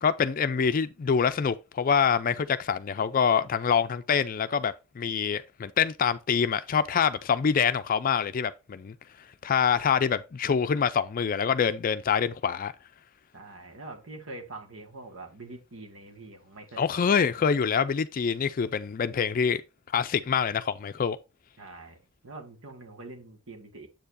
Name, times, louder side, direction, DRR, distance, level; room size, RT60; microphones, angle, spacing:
voice 1, 0.0-8.9 9.4-12.7 16.8-19.6 19.9-21.2, left 6 dB, 45° left, 0.4 m, -25 dB
voice 2, 13.3-16.9 21.6-23.9, right 2 dB, 85° right, 1.6 m, -44 dB
7.8 x 6.8 x 2.6 m
head